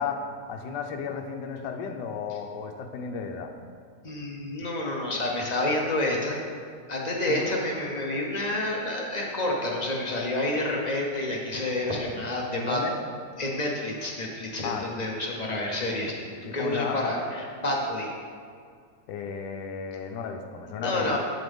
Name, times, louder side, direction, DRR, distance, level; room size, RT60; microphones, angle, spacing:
voice 1, 0.0-3.5 7.3-7.5 12.5-13.0 14.6-14.9 16.4-17.1 19.1-21.2, left 6 dB, 80° left, 4 dB, 1.3 m, -33 dB
voice 2, 4.0-6.4 6.9-12.8 13.4-18.1 20.8-21.2, left 1 dB, 40° left, -2 dB, 0.5 m, -29 dB
7.5 x 7.4 x 3.5 m, 2.1 s
omnidirectional pair, 1.9 m